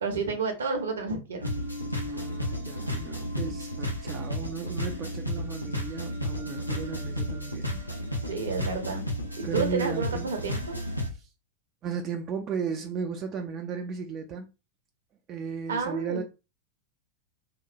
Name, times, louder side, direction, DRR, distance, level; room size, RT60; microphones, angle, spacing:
voice 1, 0.0-1.5 8.3-9.0 9.4-10.8 15.7-16.2, right 4 dB, 65° right, 0.7 m, -30 dB
sound 1, 1.4-11.1, left 1 dB, 90° left, 0.5 m, -33 dB
voice 2, 2.0-7.8 8.2-8.3 9.4-10.3 11.1-11.3 11.8-14.5 15.3-16.2, right 6 dB, 30° right, 0.3 m, -35 dB
2.9 x 2.1 x 2.5 m
figure-of-eight pair, 90°, 0 cm